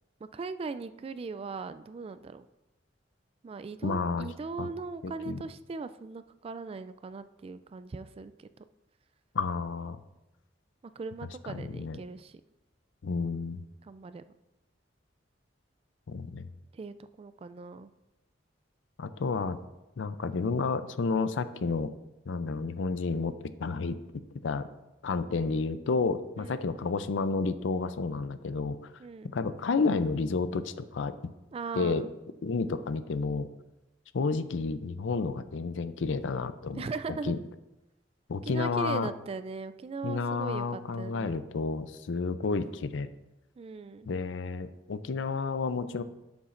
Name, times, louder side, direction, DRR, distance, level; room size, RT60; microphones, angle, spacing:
voice 1, 0.3-2.5 3.4-8.6 11.0-12.4 13.8-14.3 16.7-17.9 26.4-26.7 29.0-29.3 31.5-32.1 36.8-37.3 38.4-41.4 43.6-44.1, right 4 dB, 30° right, 13 dB, 0.3 m, -39 dB
voice 2, 3.8-4.3 4.6-4.7 5.3-5.4 9.3-10.0 11.5-12.0 13.0-13.6 16.1-16.5 19.0-19.6 20.0-21.9 22.3-23.9 24.4-24.7 25.0-28.9 29.3-31.1 31.7-32.0 32.4-33.5 34.1-36.8 37.2-37.4 38.3-39.1 40.0-43.1 44.1-46.0, left 4 dB, 80° left, 12 dB, 0.5 m, -30 dB
11.0 x 7.1 x 2.5 m, 0.99 s
head